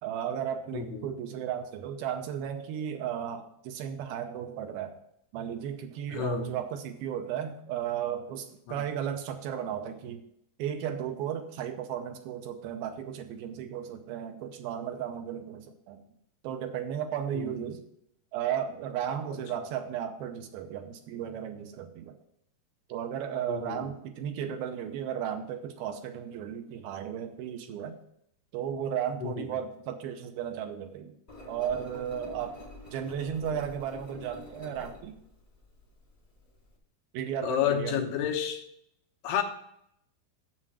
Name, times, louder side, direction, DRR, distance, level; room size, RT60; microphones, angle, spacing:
voice 1, 0.0-4.9 5.3-10.2 10.6-16.0 16.4-17.8 18.3-22.2 22.9-28.0 28.5-31.2 31.5-32.6 32.9-35.2 37.1-38.1, right 9 dB, 80° right, 6 dB, 2.5 m, -35 dB
voice 2, 0.7-1.1 6.1-6.5 8.7-8.8 17.3-17.6 23.5-23.9 29.2-29.5 37.4-38.6 39.2-39.4, left 9 dB, 80° left, 4 dB, 3.0 m, -30 dB
Engine, 31.3-36.8, left 1 dB, 20° left, 1.3 m, -48 dB
7.5 x 7.5 x 6.1 m, 0.74 s
omnidirectional pair, 4.6 m